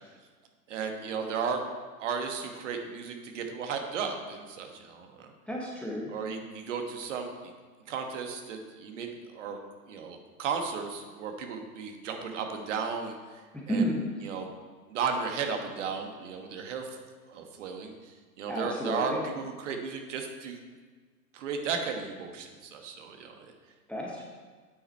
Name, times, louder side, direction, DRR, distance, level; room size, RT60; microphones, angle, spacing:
voice 1, 0.7-1.6 2.0-5.3 6.1-7.5 7.9-9.6 9.9-13.9 14.2-14.5 14.9-17.0 17.3-20.6 21.3-23.3, right 5 dB, 50° right, 4 dB, 1.4 m, -35 dB
voice 2, 5.5-6.1 13.7-14.3 18.5-19.2 23.9-24.2, equal, 5° left, -3 dB, 0.8 m, -31 dB
8.9 x 6.1 x 4.4 m, 1.4 s
figure-of-eight pair, 110°, 46 cm